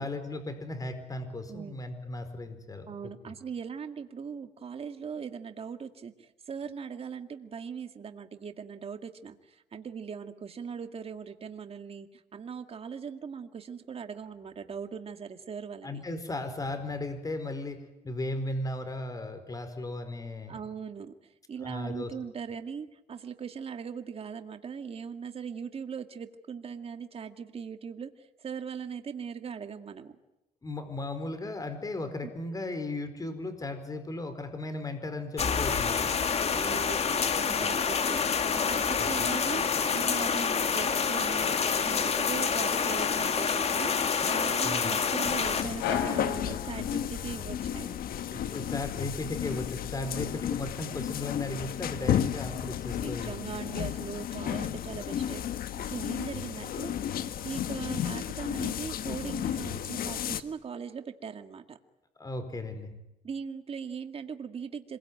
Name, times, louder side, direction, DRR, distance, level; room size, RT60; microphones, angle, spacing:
voice 1, 0.0-2.9 3.2-3.3 15.8-20.6 21.6-22.1 30.6-36.1 39.0-39.1 44.6-45.0 48.3-53.3 62.2-63.0, left 2 dB, 20° left, 9 dB, 4.6 m, -36 dB
voice 2, 1.5-1.8 2.9-16.0 20.5-30.2 32.2-32.3 36.5-39.7 39.9-41.6 41.9-48.0 50.0-50.4 52.9-55.5 55.8-57.0 57.4-61.8 63.2-65.0, right 6 dB, 35° right, 7 dB, 2.0 m, -40 dB
sound 1, 35.4-45.6, left 6 dB, 40° left, 2.1 m, -27 dB
sound 2, 45.2-60.4, left 10 dB, 60° left, 1.5 m, -33 dB
sound 3, 45.8-47.6, left 8 dB, 85° left, 5.3 m, -34 dB
26.5 x 22.5 x 9.5 m, 0.90 s
cardioid pair, 110°, 17 cm